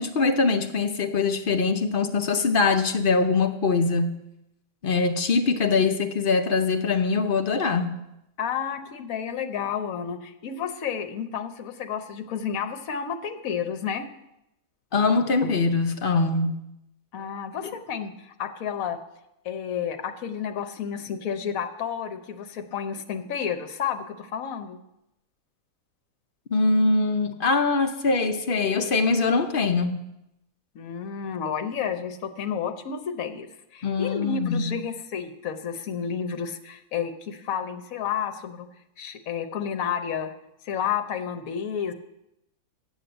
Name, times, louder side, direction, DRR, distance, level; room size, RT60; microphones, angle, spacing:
voice 1, 0.0-4.2 4.8-8.0 14.9-16.5 26.5-30.1 33.8-34.7, left 4 dB, 50° left, 6 dB, 0.7 m, -23 dB
voice 2, 8.4-14.0 17.1-19.0 19.4-24.8 30.7-38.7 39.0-40.3 40.6-41.9, left 7 dB, 65° left, 8 dB, 1.2 m, -31 dB
9.2 x 6.6 x 7.8 m, 0.86 s
omnidirectional pair, 1.6 m